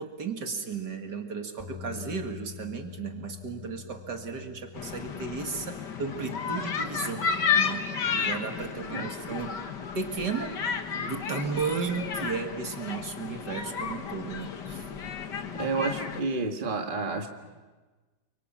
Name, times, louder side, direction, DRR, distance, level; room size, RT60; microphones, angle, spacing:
voice 1, 0.0-7.3 7.6-9.6 10.0-10.6 10.9-14.9, right 5 dB, 65° right, 4 dB, 2.7 m, -34 dB
sound 1, 1.6-7.8, left 11 dB, 10° right, 4.3 m, -47 dB
sound 2, 4.7-16.2, left 6 dB, 65° left, 2.1 m, -32 dB
voice 2, 8.9-9.4 15.5-17.3, right 3 dB, 25° right, 3 dB, 2.0 m, -30 dB
30.0 x 24.5 x 7.5 m, 1.3 s
omnidirectional pair, 2.0 m